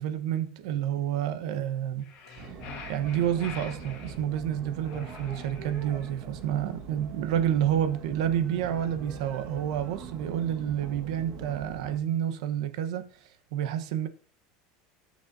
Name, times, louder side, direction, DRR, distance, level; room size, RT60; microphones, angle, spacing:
voice 1, 0.0-2.0 2.9-13.1 13.5-14.1, right 10 dB, 85° right, 1.1 m, -29 dB
sound 1, 2.0-4.2 4.8-6.1, left 5 dB, 45° left, 2.5 m, -45 dB
sound 2, 2.4-12.0, right 5 dB, 35° right, 1.7 m, -43 dB
17.5 x 6.5 x 2.8 m
cardioid pair, 160°, 3 cm